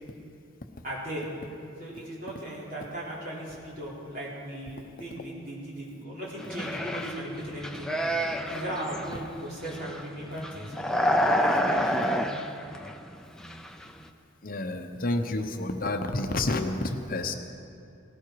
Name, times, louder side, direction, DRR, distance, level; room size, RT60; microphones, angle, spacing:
voice 1, 0.8-1.2 1.8-7.9 8.5-10.7 11.2-12.3, right 1 dB, 45° right, -6 dB, 4.1 m, -37 dB
sound 1, 6.4-7.2 7.5-9.1 9.6-10.0 10.3-13.1 13.4-13.9, equal, 5° left, 0.6 m, -28 dB
voice 2, 14.4-17.3, left 2 dB, 45° left, 6 dB, 0.8 m, -29 dB
18.0 x 16.5 x 4.7 m, 2.6 s
head